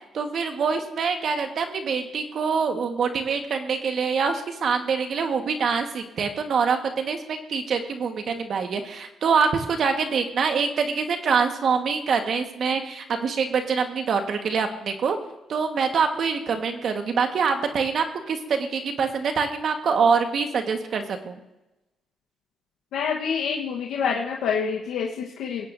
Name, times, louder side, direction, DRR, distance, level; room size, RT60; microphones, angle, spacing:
voice 1, 0.1-15.2 15.5-21.4, right 5 dB, 60° right, 5 dB, 1.4 m, -25 dB
voice 2, 22.9-25.7, left 6 dB, 80° left, -2 dB, 1.2 m, -27 dB
21.0 x 9.2 x 2.7 m, 0.98 s
cardioid pair, 90°, 0 cm